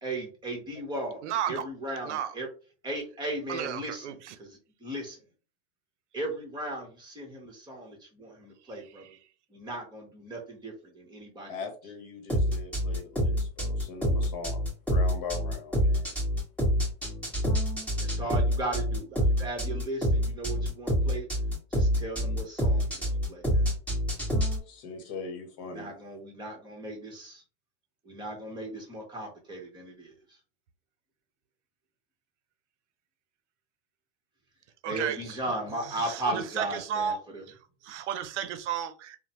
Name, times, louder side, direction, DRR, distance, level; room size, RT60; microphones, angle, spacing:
voice 1, 0.0-2.5 2.8-4.1 4.4-5.2 6.1-9.1 9.5-11.7 18.0-21.3 21.7-23.7 25.6-27.4 28.0-30.4 34.8-37.4, right 1 dB, 10° right, 1.1 m, -36 dB
voice 2, 1.2-1.6 2.0-2.3 3.5-4.4 34.8-35.4 35.8-37.2 37.5-39.2, right 9 dB, 90° right, 0.6 m, -33 dB
voice 3, 11.5-14.6 14.9-16.1 24.7-25.9, left 4 dB, 50° left, 1.0 m, -40 dB
sound 1, 12.3-24.6, equal, 5° left, 1.4 m, -26 dB
3.0 x 2.1 x 2.8 m
supercardioid pair, 130°, 34 cm